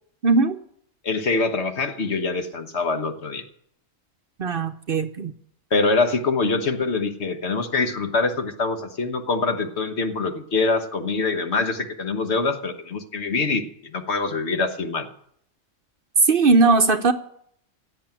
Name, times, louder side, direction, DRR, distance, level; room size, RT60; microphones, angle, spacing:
voice 1, 0.2-0.6 4.4-5.3 16.2-17.1, right 3 dB, 50° right, 9 dB, 0.8 m, -18 dB
voice 2, 1.0-3.4 5.7-15.1, left 3 dB, 60° left, 7 dB, 1.5 m, -24 dB
16.5 x 8.2 x 9.0 m, 0.68 s
omnidirectional pair, 1.3 m